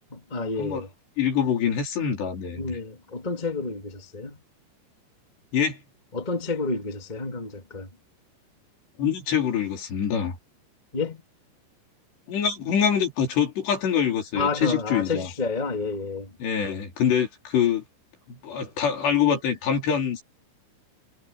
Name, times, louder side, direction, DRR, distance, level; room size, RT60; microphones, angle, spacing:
voice 1, 0.1-0.9 2.6-4.4 6.1-7.9 10.9-11.2 14.3-16.3, left 3 dB, 15° left, 1.9 m, -30 dB
voice 2, 1.2-2.8 5.5-5.8 9.0-10.4 12.3-15.3 16.4-17.8 18.3-20.2, left 8 dB, 60° left, 6.2 m, -25 dB
omnidirectional pair, 5.6 m